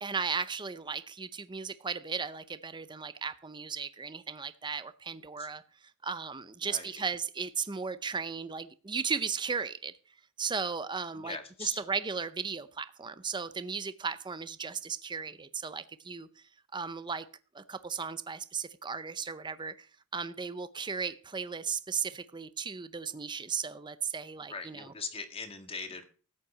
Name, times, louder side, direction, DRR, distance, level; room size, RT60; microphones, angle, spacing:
voice 1, 0.0-5.6 6.0-9.9 10.4-16.3 16.7-17.3 17.5-19.8 20.1-24.9, right 5 dB, 20° right, 0.6 m, -36 dB
voice 2, 6.6-7.0 11.1-11.8 24.5-26.0, left 4 dB, 25° left, 1.8 m, -41 dB
14.0 x 5.7 x 8.5 m
head